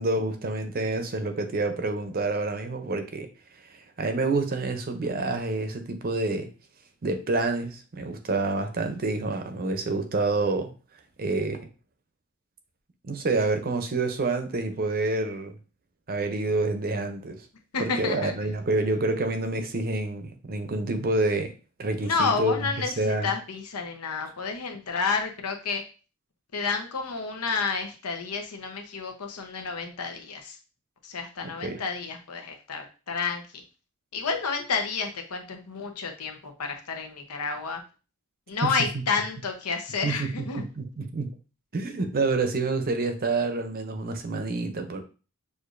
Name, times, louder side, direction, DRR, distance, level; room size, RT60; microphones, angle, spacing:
voice 1, 0.0-3.3 3.7-6.5 7.0-10.7 11.2-11.6 13.0-15.6 16.1-17.4 17.8-21.5 21.8-23.3 31.6-31.8 38.6-38.7 40.0-40.3 40.6-41.3 41.7-45.0, right 3 dB, 45° right, 7 dB, 0.6 m, -28 dB
voice 2, 17.7-18.3 22.0-25.8 26.5-30.6 31.0-33.4 34.1-37.8 38.5-40.6, left 4 dB, 90° left, 5 dB, 0.8 m, -30 dB
6.5 x 2.5 x 2.5 m, 0.34 s
head